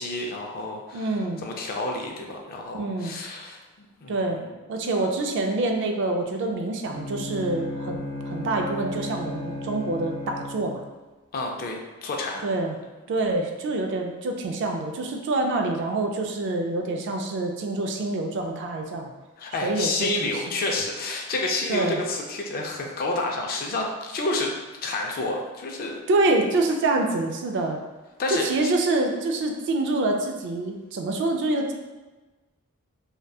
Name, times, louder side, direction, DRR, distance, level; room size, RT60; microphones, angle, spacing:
voice 1, 0.0-1.1 1.4-4.5 11.3-12.4 19.4-24.5 24.8-26.0 28.2-28.7, left 2 dB, 40° left, 1 dB, 0.3 m, -29 dB
voice 2, 0.9-1.4 2.7-3.1 4.1-4.4 4.7-10.8 12.4-12.8 13.1-19.1 19.6-20.4 21.7-22.0 26.1-27.8 28.3-31.7, right 2 dB, 55° right, 3 dB, 0.3 m, -26 dB
Bowed string instrument, 6.8-10.9, left 1 dB, 75° left, 0.7 m, -35 dB
2.7 x 2.1 x 2.3 m, 1.2 s
head